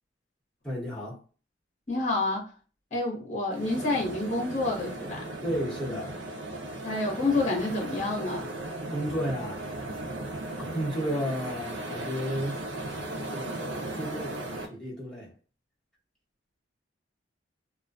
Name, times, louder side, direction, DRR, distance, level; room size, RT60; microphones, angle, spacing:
voice 1, 0.6-1.2 5.4-6.2 8.9-9.7 10.6-12.6 13.1-15.3, equal, 5° left, 1.0 m, -33 dB
voice 2, 1.9-2.4 2.9-5.2 6.8-8.5, left 2 dB, 40° left, 0.9 m, -28 dB
sound 1, 3.5-14.7, right 1 dB, 80° right, 0.6 m, -36 dB
2.3 x 2.3 x 2.4 m
head